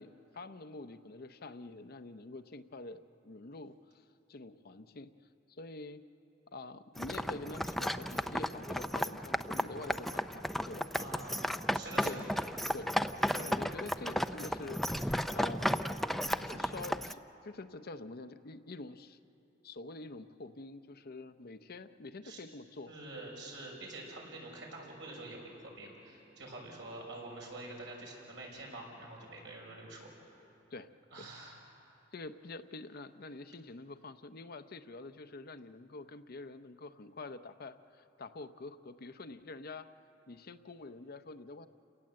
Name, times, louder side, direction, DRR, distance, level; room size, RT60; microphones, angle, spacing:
voice 1, 0.0-3.7 4.3-5.1 5.5-6.0 6.5-10.9 12.0-12.3 12.7-15.7 16.4-19.2 19.6-22.9 30.7-30.9 31.2-31.3 32.1-39.9 40.3-41.7, left 2 dB, 55° left, 11 dB, 0.7 m, -46 dB
sound 1, 7.0-17.1, equal, ahead, 0.5 m, -34 dB
voice 2, 11.0-11.5 11.7-12.3 22.2-22.4 22.9-30.1 31.1-31.6, right 2 dB, 70° right, -1 dB, 6.1 m, -46 dB
29.5 x 18.5 x 7.6 m, 2.8 s
head